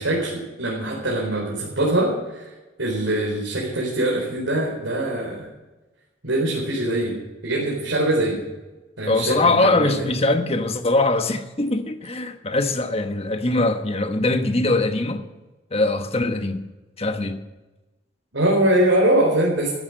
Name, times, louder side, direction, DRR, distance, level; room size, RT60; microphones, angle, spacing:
voice 1, 0.0-2.5 2.8-5.5 6.2-7.1 7.4-8.4 9.0-9.9 18.3-19.7, right 1 dB, 90° right, 4.3 m, -22 dB
voice 2, 9.1-15.2 15.7-16.7 17.0-17.4, left 2 dB, 30° left, 1.2 m, -22 dB
14.0 x 11.0 x 6.6 m
head